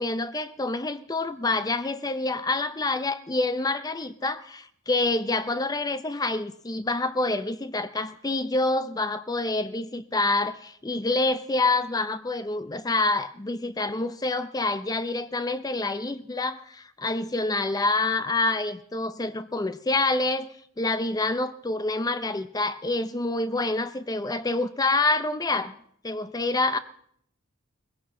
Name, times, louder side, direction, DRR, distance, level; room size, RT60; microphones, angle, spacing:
voice 1, 0.0-25.8 26.0-26.8, left 2 dB, 20° left, 11 dB, 0.5 m, -27 dB
20.5 x 16.0 x 3.7 m, 0.66 s
head